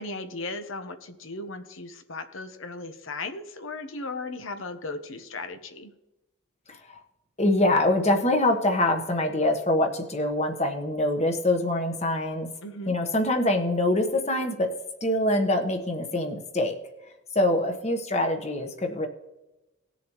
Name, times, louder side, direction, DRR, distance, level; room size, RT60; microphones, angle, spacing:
voice 1, 0.0-5.9 12.6-13.0, left 2 dB, 70° left, 8 dB, 1.0 m, -36 dB
voice 2, 6.7-7.0 7.4-12.5 12.9-14.7 15.0-16.8 17.3-19.1, left 1 dB, 30° left, 5 dB, 1.2 m, -24 dB
18.5 x 7.0 x 3.1 m, 0.98 s
head